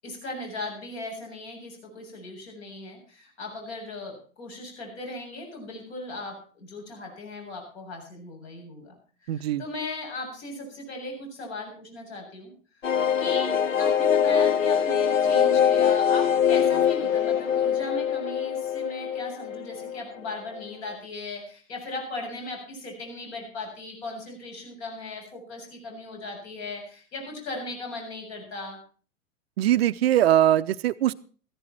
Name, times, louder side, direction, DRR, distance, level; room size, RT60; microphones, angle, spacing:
voice 1, 0.0-9.0 9.2-12.5 12.9-28.8, left 2 dB, 55° left, 1 dB, 7.5 m, -37 dB
voice 2, 9.3-9.6 29.6-31.1, right 12 dB, 50° right, 14 dB, 0.6 m, -21 dB
sound 1, 12.8-20.3 20.6-20.7 20.9-21.0, left 8 dB, 80° left, 0.8 m, -23 dB
15.0 x 13.5 x 4.4 m, 0.40 s
figure-of-eight pair, 100°, 39 cm